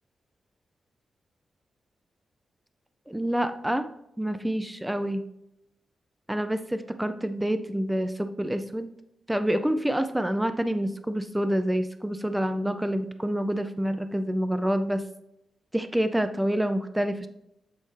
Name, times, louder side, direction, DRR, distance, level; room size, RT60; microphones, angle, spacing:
voice 1, 3.1-3.9 4.2-5.3 6.3-8.9 9.3-15.0 15.7-17.3, right 1 dB, 5° right, 9 dB, 0.4 m, -27 dB
8.2 x 4.2 x 3.2 m, 0.82 s
wide cardioid pair, 135°, 0 cm